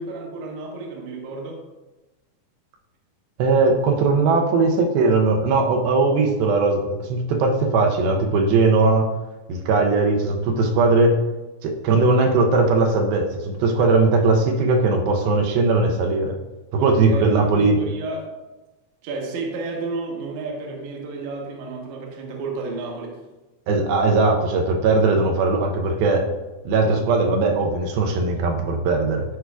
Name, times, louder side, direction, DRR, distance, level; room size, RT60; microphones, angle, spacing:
voice 1, 0.0-1.6 16.8-18.3 19.0-23.2, right 3 dB, 65° right, 0 dB, 2.1 m, -32 dB
voice 2, 3.4-9.1 9.5-11.2 11.6-16.3 16.7-17.8 23.7-26.2 26.6-29.2, right 3 dB, 85° right, 2 dB, 2.6 m, -19 dB
12.5 x 4.7 x 2.3 m, 1.1 s
omnidirectional pair, 4.3 m